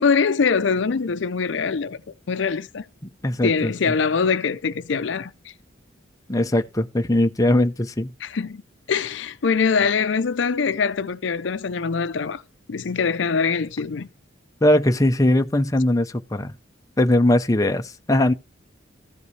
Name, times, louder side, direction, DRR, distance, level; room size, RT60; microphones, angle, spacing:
voice 1, 0.0-2.0 2.3-2.8 3.4-5.5 8.2-8.6 8.9-12.4 12.7-14.1, left 5 dB, 70° left, 0.5 m, -23 dB
voice 2, 3.0-3.7 6.3-8.1 14.6-16.6 17.0-18.3, left 1 dB, 15° left, 0.6 m, -20 dB
14.5 x 5.3 x 3.2 m
head